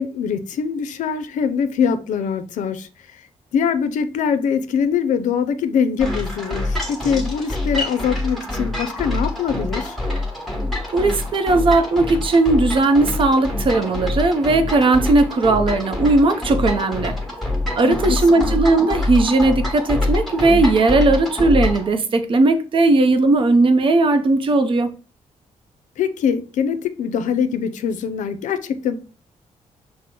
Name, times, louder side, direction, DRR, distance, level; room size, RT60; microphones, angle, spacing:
voice 1, 0.0-3.2 3.5-10.0 17.8-18.5 26.0-29.0, left 7 dB, 80° left, 0.4 m, -23 dB
sound 1, 6.0-21.9, left 2 dB, ahead, 1.2 m, -25 dB
voice 2, 10.9-17.2 17.8-24.9, right 2 dB, 45° right, 0.6 m, -17 dB
5.8 x 2.0 x 3.7 m
cardioid pair, 115°, 13 cm